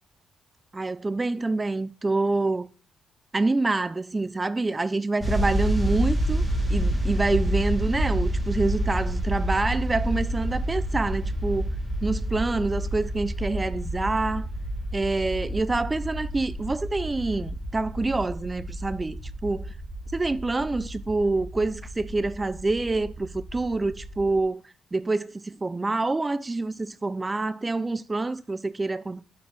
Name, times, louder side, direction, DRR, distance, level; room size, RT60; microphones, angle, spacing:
voice 1, 0.7-2.7 3.3-6.4 6.7-11.8 12.0-14.5 14.9-19.7 20.1-24.6 24.9-29.2, right 3 dB, 20° right, 0.3 m, -27 dB
sound 1, 5.2-24.4, right 1 dB, 5° left, 1.2 m, -29 dB
6.5 x 4.7 x 3.3 m
cardioid pair, 90°, 0 cm